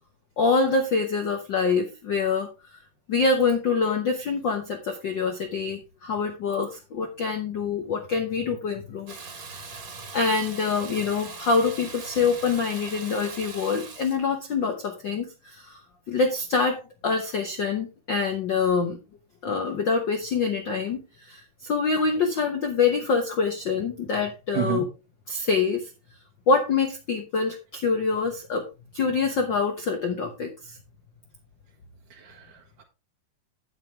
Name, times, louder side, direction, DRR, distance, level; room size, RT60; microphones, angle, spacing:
voice 1, 0.4-2.5 3.1-9.1 9.5-9.7 10.1-15.8 16.1-19.0 19.4-21.0 21.2-24.8 25.3-25.9 26.5-28.6 28.9-30.8, left 4 dB, 80° left, 5 dB, 1.0 m, -25 dB
Water tap faucet / Bathtub (filling or washing), 9.1-14.2, right 5 dB, 35° right, 1.6 m, -41 dB
voice 2, 24.5-24.8 32.1-32.8, right 11 dB, 85° right, -1 dB, 3.0 m, -31 dB
9.4 x 8.7 x 3.4 m, 0.28 s
omnidirectional pair, 3.6 m